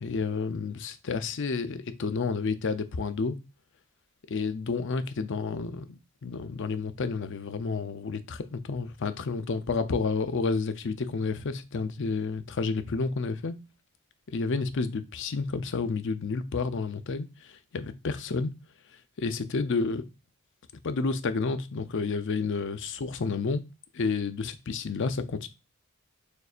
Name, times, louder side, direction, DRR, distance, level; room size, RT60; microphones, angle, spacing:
voice 1, 0.0-3.4 4.3-13.6 14.3-18.5 19.2-20.1 20.8-23.6 23.9-25.5, left 4 dB, 60° left, 0.5 m, -30 dB
6.4 x 2.7 x 2.4 m
head